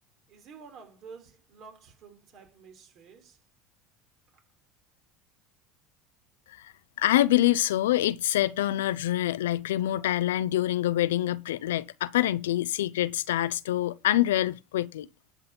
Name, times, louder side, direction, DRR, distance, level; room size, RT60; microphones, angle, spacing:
voice 1, 0.3-3.4 4.3-4.4, right 5 dB, 55° right, 3.7 m, -50 dB
voice 2, 6.6-15.1, left 14 dB, 90° left, 0.5 m, -26 dB
11.0 x 4.1 x 7.0 m
supercardioid pair, 90°, 0 cm